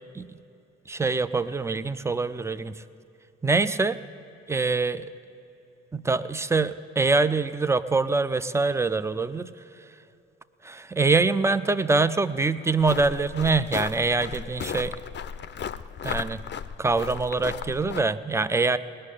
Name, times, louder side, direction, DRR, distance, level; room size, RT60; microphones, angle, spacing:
voice 1, 0.9-2.8 3.4-4.0 4.5-5.1 5.9-9.5 10.6-14.9 16.0-16.4 16.8-18.8, right 3 dB, 10° right, 14 dB, 0.5 m, -24 dB
sound 1, 12.8-18.0, left 7 dB, 35° left, 0.6 m, -35 dB
19.0 x 6.5 x 9.9 m, 2.8 s
hypercardioid pair, 45°, 31 cm